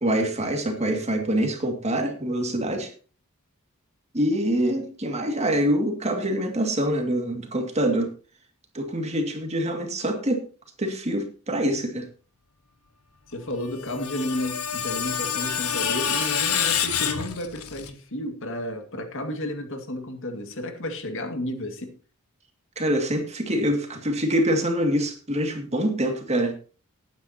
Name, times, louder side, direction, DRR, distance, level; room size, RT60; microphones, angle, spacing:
voice 1, 0.0-2.9 4.1-8.1 8.7-10.4 10.8-12.1 22.8-26.6, right 1 dB, 30° right, 2.3 m, -25 dB
voice 2, 13.3-21.9, left 1 dB, 60° left, 2.1 m, -32 dB
Screech, 13.6-17.9, left 8 dB, 90° left, 1.6 m, -27 dB
19.0 x 9.4 x 2.9 m
head